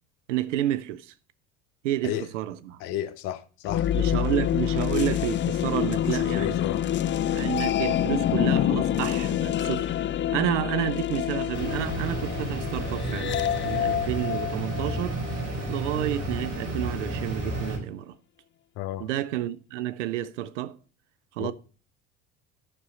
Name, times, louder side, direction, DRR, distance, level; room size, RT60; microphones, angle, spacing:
voice 1, 0.3-1.1 1.8-2.8 3.9-6.6 7.3-9.9 10.3-15.2 15.7-18.2 19.0-20.8 21.4-21.5, right 13 dB, 85° right, 0.7 m, -30 dB
voice 2, 2.8-3.9 6.0-6.9 18.8-19.1 21.4-21.5, left 12 dB, 65° left, 1.1 m, -32 dB
sound 1, 3.7-15.5, left 11 dB, 30° left, 0.5 m, -27 dB
sound 2, 11.5-17.8, right 1 dB, 55° right, 4.9 m, -32 dB
10.0 x 6.0 x 4.1 m
hypercardioid pair, 70°, 35 cm